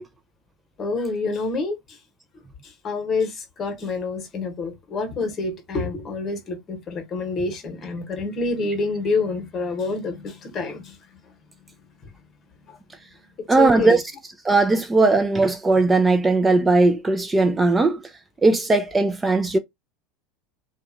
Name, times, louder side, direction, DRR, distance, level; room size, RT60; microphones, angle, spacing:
voice 1, 0.8-2.0 2.6-11.0 12.7-12.8 13.4-14.0, left 3 dB, 35° left, 1.0 m, -27 dB
voice 2, 13.5-14.0 14.4-18.0 18.4-19.6, right 3 dB, 15° right, 0.3 m, -18 dB
2.6 x 2.2 x 2.4 m
hypercardioid pair, 80°, 0 cm